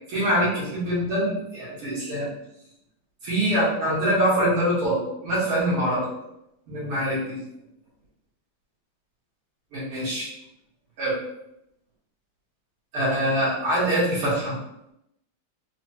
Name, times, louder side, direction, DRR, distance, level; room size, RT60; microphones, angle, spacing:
voice 1, 0.1-2.3 3.2-6.1 6.7-7.4 9.7-10.3 11.0-11.1 12.9-14.5, right 1 dB, 80° right, -9 dB, 2.4 m, -24 dB
4.9 x 2.2 x 2.8 m, 0.80 s
omnidirectional pair, 2.4 m